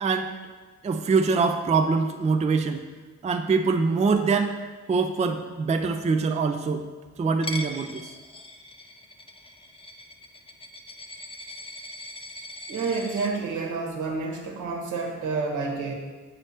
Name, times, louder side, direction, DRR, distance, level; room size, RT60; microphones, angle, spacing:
voice 1, 0.0-0.3 0.8-2.8 3.2-4.5 4.9-6.8 7.2-8.1, right 4 dB, 20° right, 5 dB, 0.5 m, -24 dB
Coin (dropping), 7.4-13.3, left 1 dB, 20° left, 0.6 m, -40 dB
voice 2, 12.7-15.9, right 4 dB, 75° right, 0 dB, 1.5 m, -29 dB
7.7 x 5.0 x 4.3 m, 1.3 s
cardioid pair, 90°, 30 cm